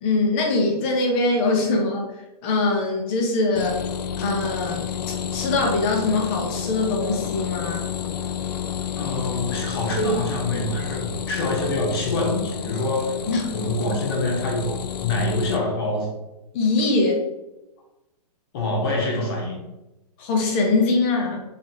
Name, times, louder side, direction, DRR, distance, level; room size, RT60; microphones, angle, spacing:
voice 1, 0.0-2.1 2.4-3.8 4.2-4.9 5.3-7.9 13.3-13.5 16.5-17.2 20.2-21.4, left 3 dB, 20° left, 1 dB, 0.5 m, -22 dB
sound 1, 3.5-15.6, left 8 dB, 80° left, 0.4 m, -30 dB
voice 2, 9.0-13.2 13.5-16.1 18.5-19.6, left 1 dB, 35° left, 0 dB, 0.9 m, -25 dB
4.5 x 2.8 x 2.7 m, 0.97 s
hypercardioid pair, 165°, 21 cm